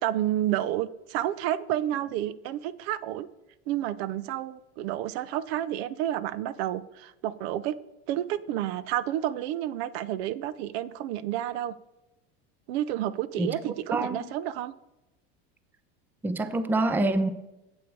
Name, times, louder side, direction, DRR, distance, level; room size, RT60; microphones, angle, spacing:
voice 1, 0.0-3.3 3.7-7.8 8.1-11.7 12.7-14.7, right 12 dB, 75° right, 0.6 m, -30 dB
voice 2, 13.9-14.3 16.2-17.3, right 2 dB, 5° right, 0.4 m, -26 dB
8.4 x 8.0 x 4.6 m
supercardioid pair, 135°, 31 cm